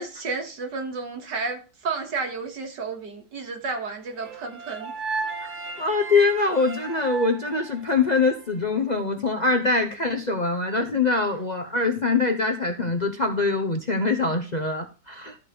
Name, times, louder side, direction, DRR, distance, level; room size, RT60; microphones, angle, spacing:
voice 1, 0.0-4.9, right 4 dB, 80° right, 4 dB, 2.5 m, -32 dB
sound 1, 4.2-8.4, right 3 dB, 45° right, 1.3 m, -34 dB
voice 2, 5.8-15.4, left 3 dB, 35° left, 4 dB, 0.8 m, -23 dB
13.0 x 4.4 x 6.7 m, 0.34 s
omnidirectional pair, 1.9 m